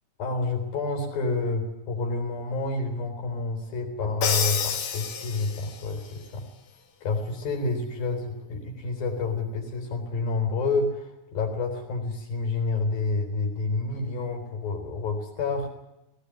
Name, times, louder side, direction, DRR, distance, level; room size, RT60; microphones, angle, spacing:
voice 1, 0.2-6.5 7.0-15.7, left 3 dB, 80° left, 3 dB, 5.6 m, -29 dB
Crash cymbal, 4.2-5.9, left 7 dB, 60° left, 2.7 m, -28 dB
20.5 x 18.0 x 9.9 m, 0.93 s
omnidirectional pair, 4.1 m